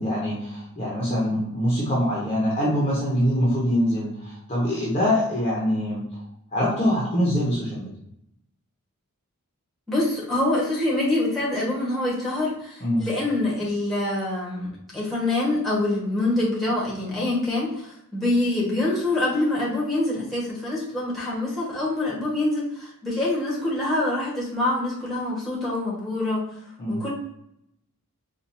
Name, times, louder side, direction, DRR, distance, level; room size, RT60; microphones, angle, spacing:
voice 1, 0.0-6.2 6.5-7.9 12.8-13.1 26.8-27.0, equal, 25° left, -6 dB, 1.0 m, -24 dB
voice 2, 9.9-26.5 26.9-27.1, left 2 dB, ahead, -7 dB, 1.3 m, -25 dB
4.3 x 2.6 x 2.7 m, 0.76 s
head